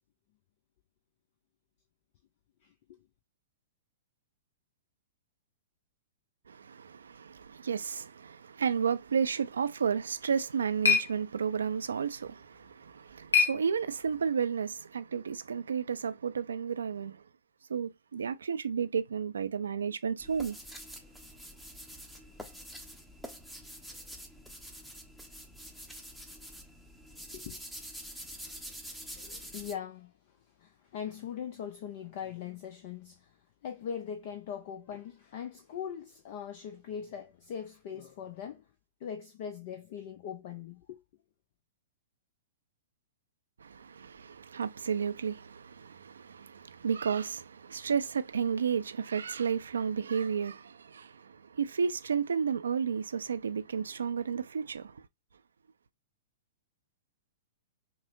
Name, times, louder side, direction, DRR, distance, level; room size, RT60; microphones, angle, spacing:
voice 1, 2.6-3.0 27.3-27.6 27.9-28.0 28.4-28.6 29.1-33.3 33.6-38.7 39.0-41.0, left 8 dB, 50° left, 0.6 m, -41 dB
voice 2, 6.5-17.2 17.7-20.6 43.6-55.0, right 6 dB, 75° right, 0.4 m, -32 dB
sound 1, 10.1-14.3, left 6 dB, 80° left, 1.0 m, -32 dB
sound 2, 20.2-29.7, equal, 5° left, 0.8 m, -46 dB
5.8 x 2.1 x 2.5 m
figure-of-eight pair, 110°, 0 cm